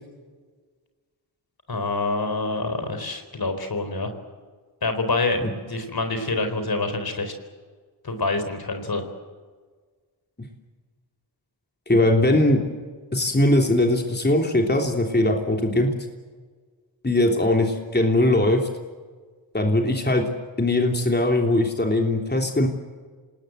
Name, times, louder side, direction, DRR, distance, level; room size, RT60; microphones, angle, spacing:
voice 1, 1.7-4.1 4.8-7.3 8.0-9.0, left 3 dB, 55° left, 7 dB, 4.2 m, -26 dB
voice 2, 11.9-12.6 13.1-15.9 17.0-18.7 19.5-20.3 20.6-22.7, left 1 dB, 20° left, 2 dB, 3.2 m, -20 dB
26.0 x 20.0 x 8.0 m, 1.5 s
cardioid pair, 50°, 45 cm